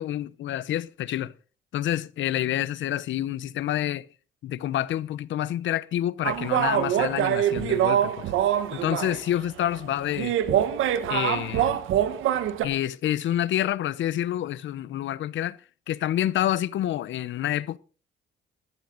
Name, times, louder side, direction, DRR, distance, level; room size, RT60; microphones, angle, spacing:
voice 1, 0.0-1.3 1.7-4.1 4.4-8.3 8.7-10.3 11.1-11.8 12.6-15.6 15.9-17.8, left 12 dB, 75° left, 0.8 m, -28 dB
sound 1, 6.2-9.2 9.7-9.9 10.1-12.7, right 10 dB, 85° right, 1.5 m, -24 dB
14.0 x 13.5 x 3.9 m
cardioid pair, 90°, 20 cm